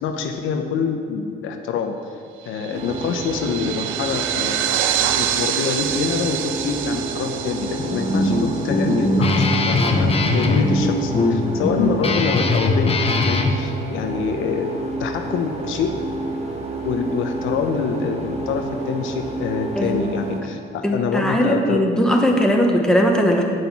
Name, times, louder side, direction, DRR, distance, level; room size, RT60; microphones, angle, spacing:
voice 1, 0.0-2.0 2.4-4.8 5.1-14.7 15.0-16.0 16.8-21.8, left 6 dB, 85° left, 5 dB, 0.7 m, -26 dB
sound 1, 2.6-9.4, right 11 dB, 80° right, 0.5 m, -26 dB
sound 2, 2.7-20.4, right 3 dB, 35° right, 1.4 m, -30 dB
Guitar, 7.8-13.6, left 2 dB, 30° left, 0.8 m, -20 dB
voice 2, 19.8-20.2 20.8-23.4, equal, 5° left, 1 dB, 1.1 m, -19 dB
7.9 x 5.3 x 5.8 m, 2.3 s
cardioid pair, 90°, 20 cm